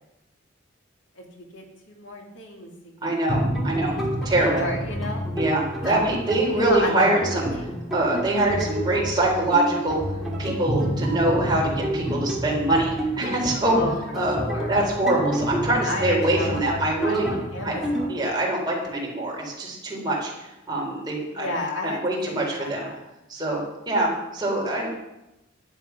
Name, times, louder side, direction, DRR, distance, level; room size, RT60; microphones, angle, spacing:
voice 1, 1.2-3.1 3.8-4.0 4.4-5.3 5.8-5.9 6.5-7.8 13.7-13.9 14.4-14.8 15.7-18.5 21.3-23.0, left 1 dB, 70° left, 1 dB, 2.5 m, -33 dB
voice 2, 3.0-4.0 4.2-4.6 5.4-7.5 7.9-10.0 10.4-13.7 14.1-14.4 14.7-17.3 17.6-17.7 18.1-21.5 21.8-22.9 23.3-23.6 23.9-24.9, right 1 dB, 20° right, -2 dB, 3.9 m, -24 dB
sound 1, 3.3-18.1, equal, ahead, 2.7 m, -29 dB
11.5 x 11.0 x 5.8 m, 0.95 s
head